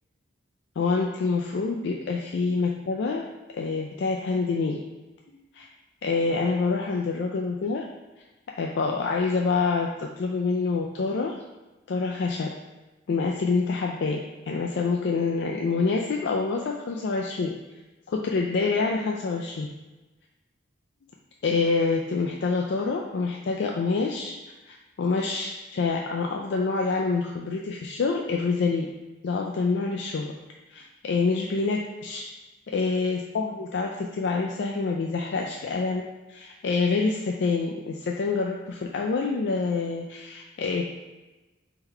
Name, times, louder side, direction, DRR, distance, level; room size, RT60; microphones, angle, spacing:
voice 1, 0.8-3.2 3.5-4.8 5.5-5.7 6.0-7.8 8.6-11.4 11.9-12.5 13.1-14.2 14.5-17.5 18.1-19.7 21.4-24.4 24.7-28.9 29.2-30.4 30.7-32.2 32.7-36.0 36.3-40.8, left 4 dB, 60° left, 0 dB, 0.3 m, -26 dB
3.8 x 2.9 x 4.4 m, 1.1 s
head